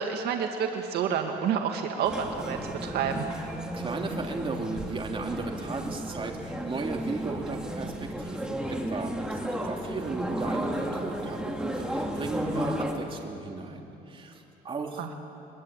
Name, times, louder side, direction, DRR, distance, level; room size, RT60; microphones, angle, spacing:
voice 1, 0.0-3.3 15.0-15.1, right 7 dB, 75° right, 4 dB, 1.9 m, -29 dB
sound 1, 2.0-12.9, equal, 5° right, 2.8 m, -33 dB
voice 2, 3.7-15.1, right 4 dB, 30° right, 2 dB, 2.9 m, -36 dB
22.5 x 21.5 x 9.0 m, 2.8 s
cardioid pair, 110°, 17 cm